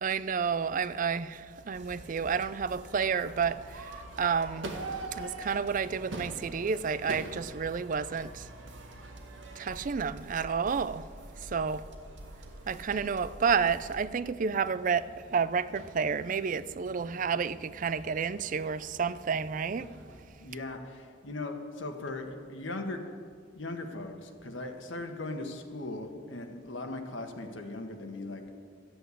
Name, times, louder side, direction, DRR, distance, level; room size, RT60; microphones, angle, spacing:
voice 1, 0.0-4.8 5.1-8.5 9.6-11.1 11.4-11.8 12.7-19.9, right 6 dB, 45° right, 0.4 m, -30 dB
Crowd / Fireworks, 1.2-20.2, right 2 dB, 90° right, 1.7 m, -47 dB
sound 1, 1.7-14.0, right 1 dB, 70° right, 2.0 m, -49 dB
voice 2, 20.4-23.0 23.5-28.4, left 2 dB, 80° left, 1.5 m, -39 dB
14.5 x 7.8 x 8.4 m
head